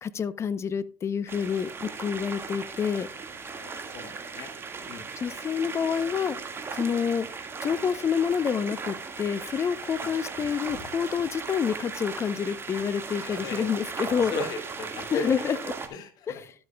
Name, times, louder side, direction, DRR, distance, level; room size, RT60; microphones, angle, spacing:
voice 1, 0.0-3.1 5.2-7.3 7.6-14.4 15.1-15.7 16.3-16.5, left 7 dB, 35° left, 16 dB, 0.7 m, -28 dB
sound 1, 1.3-15.9, right 5 dB, 30° right, 1.8 m, -37 dB
voice 2, 3.4-4.5 4.9-5.1 13.1-13.6 14.0-15.3 15.9-16.4, left 3 dB, 60° left, 6 dB, 2.1 m, -36 dB
12.5 x 7.8 x 2.3 m, 0.38 s
supercardioid pair, 85°, 8 cm